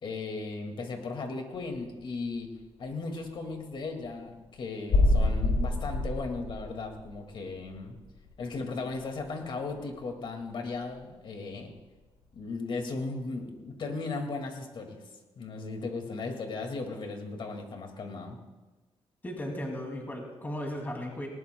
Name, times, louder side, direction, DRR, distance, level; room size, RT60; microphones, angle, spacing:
voice 1, 0.0-2.5 2.8-8.0 8.4-11.7 12.3-15.0 15.4-18.4, left 3 dB, 55° left, 4 dB, 2.1 m, -36 dB
sound 1, 1.8-2.0 4.1-4.2 4.9-8.6 8.9-9.4 9.8-9.9 10.7-10.8, left 2 dB, 75° left, 3.2 m, -27 dB
voice 2, 19.2-21.3, left 1 dB, 20° left, 1 dB, 2.5 m, -36 dB
19.0 x 18.5 x 2.2 m, 1.2 s
cardioid pair, 130°, 10 cm